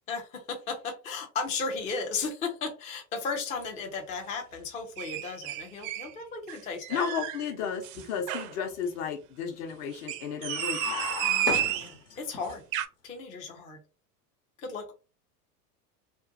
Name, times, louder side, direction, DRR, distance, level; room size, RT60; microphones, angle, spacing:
voice 1, 0.1-7.1 11.2-12.6 13.0-13.8 14.6-14.9, left 4 dB, 15° left, 3 dB, 0.3 m, -35 dB
sound 1, 5.0-6.1 6.5-7.4 7.8-8.5 9.9-11.9 12.5-12.9, right 12 dB, 55° right, 0.5 m, -31 dB
voice 2, 6.9-11.0, left 7 dB, 55° left, 5 dB, 0.8 m, -33 dB
sound 2, 10.4-12.4, left 4 dB, 80° left, 1.0 m, -34 dB
2.6 x 2.1 x 2.5 m, 0.34 s
hypercardioid pair, 95°, 47 cm